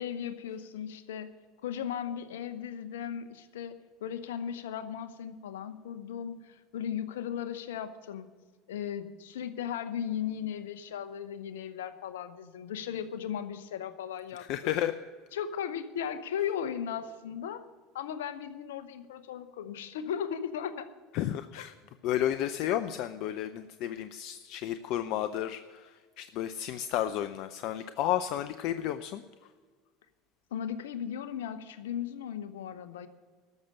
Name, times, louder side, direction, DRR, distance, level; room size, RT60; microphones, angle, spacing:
voice 1, 0.0-1.3 1.6-8.3 8.7-14.5 15.3-17.6 17.9-20.9 21.5-21.7 30.5-33.1, left 8 dB, 80° left, 11 dB, 0.9 m, -36 dB
voice 2, 14.4-14.9 21.1-21.7 22.0-25.9 26.2-29.2, left 11 dB, 60° left, 11 dB, 0.5 m, -32 dB
13.5 x 6.7 x 9.6 m, 1.5 s
hypercardioid pair, 80°, 0 cm